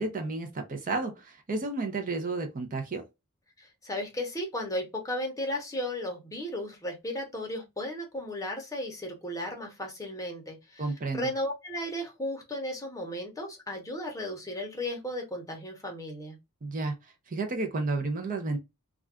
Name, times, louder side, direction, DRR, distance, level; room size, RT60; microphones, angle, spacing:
voice 1, 0.0-3.0 10.8-11.3 16.6-16.9 17.3-18.6, right 3 dB, 35° right, 0.5 m, -31 dB
voice 2, 3.6-16.4, left 1 dB, 15° left, 0.7 m, -35 dB
2.4 x 2.2 x 3.5 m
head